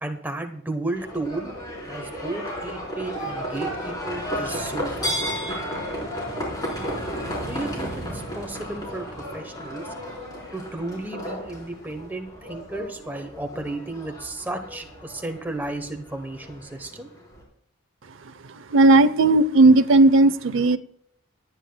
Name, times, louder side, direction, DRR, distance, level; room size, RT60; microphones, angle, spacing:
voice 1, 0.0-1.5 1.8-5.3 7.4-9.8 10.5-17.1, right 2 dB, 10° right, 4 dB, 1.0 m, -33 dB
Livestock farm animals working animals, 0.9-17.4, equal, 20° left, 4.2 m, -33 dB
voice 2, 18.7-20.8, right 2 dB, 75° right, 12 dB, 0.6 m, -15 dB
26.5 x 9.5 x 2.3 m, 0.68 s
head